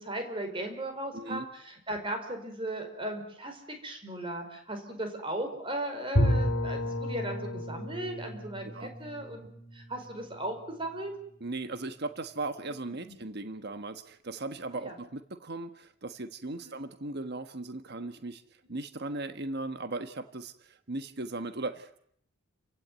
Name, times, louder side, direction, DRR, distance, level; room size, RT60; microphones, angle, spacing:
voice 1, 0.0-11.1 13.0-13.1 14.7-15.0 16.6-16.8 18.6-18.8, right 1 dB, 25° right, 5 dB, 5.1 m, -37 dB
voice 2, 1.1-1.4 8.6-8.9 11.4-18.4 18.7-22.0, right 2 dB, 50° right, 9 dB, 1.3 m, -37 dB
Bowed string instrument, 6.2-11.0, equal, 70° left, 3.0 m, -31 dB
29.5 x 16.0 x 9.3 m, 0.69 s
head